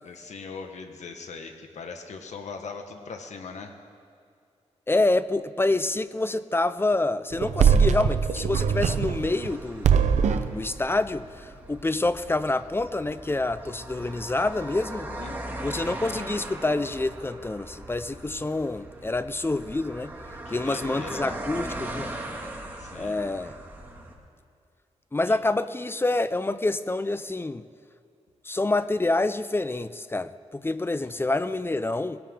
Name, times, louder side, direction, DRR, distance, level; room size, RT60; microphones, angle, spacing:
voice 1, 0.0-3.8 15.1-15.4 20.4-21.4 22.8-23.2 25.3-25.4, left 5 dB, 75° left, 5 dB, 1.4 m, -40 dB
voice 2, 4.9-10.1 10.5-15.1 15.6-20.1 20.5-22.1 22.9-23.6 25.1-27.7 28.4-32.2, left 2 dB, 20° left, 14 dB, 0.5 m, -27 dB
sound 1, 7.3-9.5 9.8-10.5, right 7 dB, 80° right, 0.7 m, -21 dB
sound 2, 9.2-24.1, right 1 dB, 15° right, 2.2 m, -39 dB
20.0 x 18.0 x 3.8 m, 2.3 s
cardioid pair, 80°, 12 cm